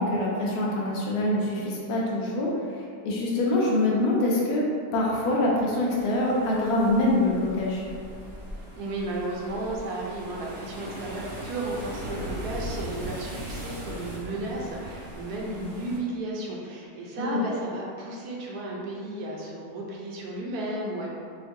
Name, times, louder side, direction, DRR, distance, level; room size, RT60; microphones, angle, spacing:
voice 1, 0.0-2.5 3.0-4.7 4.9-7.8 17.2-17.4, left 1 dB, 75° left, -4 dB, 1.2 m, -24 dB
sound 1, 5.9-16.0, right 1 dB, 40° right, 0.4 m, -39 dB
voice 2, 8.7-21.1, right 2 dB, 80° right, -3 dB, 1.2 m, -34 dB
4.4 x 2.4 x 2.6 m, 2.3 s
omnidirectional pair, 1.7 m